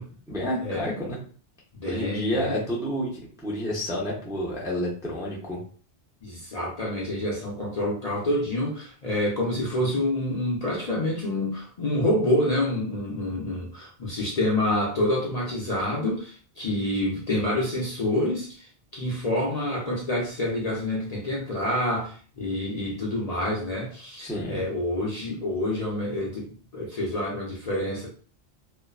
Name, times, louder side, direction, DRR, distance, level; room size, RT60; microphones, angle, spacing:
voice 1, 0.3-1.2 1.8-3.1 3.4-5.6 24.2-24.6, equal, 5° right, -4 dB, 0.4 m, -29 dB
voice 2, 1.8-2.6 6.2-28.1, left 1 dB, 50° left, -3 dB, 0.5 m, -27 dB
2.5 x 2.2 x 2.3 m, 0.42 s
omnidirectional pair, 1.1 m